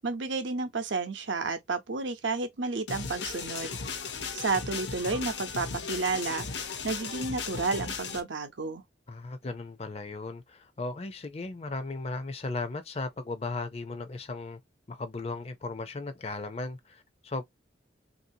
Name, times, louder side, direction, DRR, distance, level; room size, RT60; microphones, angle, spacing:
voice 1, 0.0-3.8 4.3-8.8, right 3 dB, 80° right, 0.7 m, -31 dB
sound 1, 2.9-8.2, left 5 dB, 70° left, 0.7 m, -36 dB
voice 2, 9.1-14.6 14.9-17.4, left 3 dB, 35° left, 0.5 m, -36 dB
3.1 x 2.7 x 2.7 m
head